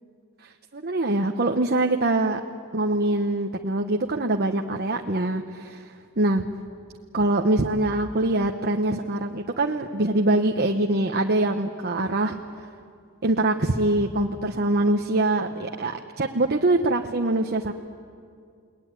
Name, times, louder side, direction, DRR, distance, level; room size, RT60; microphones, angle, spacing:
voice 1, 0.7-2.4 2.7-5.8 6.2-6.5 7.1-12.4 13.2-17.7, right 2 dB, 50° right, 3 dB, 1.1 m, -23 dB
30.0 x 20.5 x 9.6 m, 2.3 s
head